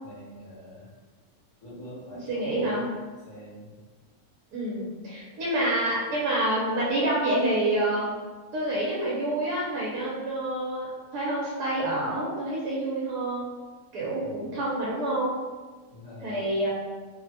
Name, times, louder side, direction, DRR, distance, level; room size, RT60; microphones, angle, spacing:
voice 1, 0.0-0.9 1.6-2.9 3.2-3.8 14.2-14.6 15.9-16.4, left 1 dB, 60° left, -8 dB, 1.3 m, -44 dB
voice 2, 2.3-2.8 4.5-8.1 8.5-13.5 13.9-15.4 16.2-16.7, right 1 dB, 85° right, -6 dB, 1.2 m, -27 dB
3.2 x 2.1 x 2.7 m, 1.4 s
omnidirectional pair, 1.6 m